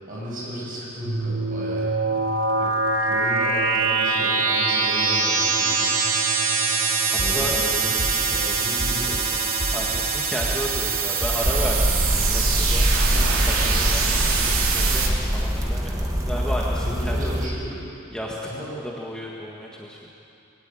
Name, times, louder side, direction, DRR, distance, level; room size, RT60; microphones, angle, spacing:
voice 1, 0.1-2.2 2.6-2.7 3.0-5.9 7.1-9.4 13.7-14.0 16.8-17.8 18.4-18.8, equal, 40° right, -5 dB, 7.8 m, -34 dB
sound 1, 1.0-15.1, right 4 dB, 80° right, 2.8 m, -23 dB
voice 2, 7.0-7.6 9.7-11.9 12.3-12.9 13.4-17.3 18.1-18.4 18.8-20.0, equal, 5° left, -3 dB, 1.7 m, -33 dB
sound 2, 7.2-7.6 8.0-8.4 8.8-9.2 9.6-10.0 10.4-10.8 11.2-11.6 12.0-12.2, equal, 55° left, 5.0 m, -29 dB
sound 3, 11.4-17.5, equal, 15° right, 1.4 m, -23 dB
21.5 x 16.5 x 9.1 m, 2.7 s
head